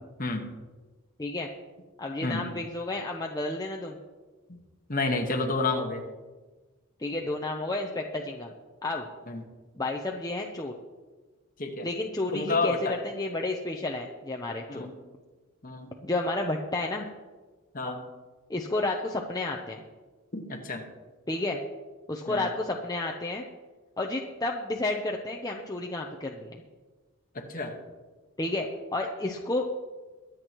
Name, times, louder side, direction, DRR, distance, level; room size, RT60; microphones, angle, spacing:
voice 1, 0.2-0.5 2.2-2.5 4.5-4.6 4.9-6.0 9.3-9.4 11.6-11.9 12.3-13.0 14.7-14.9 15.6-15.9 17.7-18.0 20.3-20.8 22.3-22.5 27.3-27.7, left 3 dB, 40° left, 2 dB, 1.4 m, -30 dB
voice 2, 2.0-4.0 7.0-8.5 8.8-9.1 9.8-10.7 11.8-12.8 13.0-14.9 16.0-17.1 18.5-19.8 21.3-21.6 22.1-23.4 24.0-26.6 28.4-29.7, left 2 dB, 15° left, 0 dB, 0.7 m, -31 dB
23.0 x 8.2 x 3.1 m, 1.3 s
head